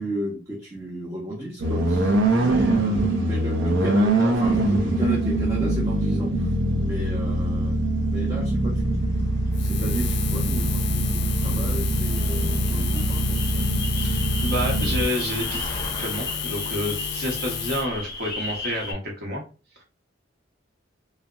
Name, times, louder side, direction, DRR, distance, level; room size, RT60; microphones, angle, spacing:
voice 1, 0.0-7.8 8.1-9.1 9.6-13.6 14.9-15.0, right 1 dB, 20° right, -4 dB, 0.5 m, -34 dB
sound 1, 1.6-15.1, right 1 dB, 90° right, 0.5 m, -23 dB
sound 2, 8.9-18.9, left 3 dB, 25° left, 0.6 m, -36 dB
Buzz, 9.5-17.9, left 7 dB, 60° left, 0.4 m, -32 dB
voice 2, 14.0-15.7 16.0-19.4 19.8-19.9, equal, 60° right, -1 dB, 0.9 m, -29 dB
2.7 x 2.0 x 2.4 m, 0.34 s
head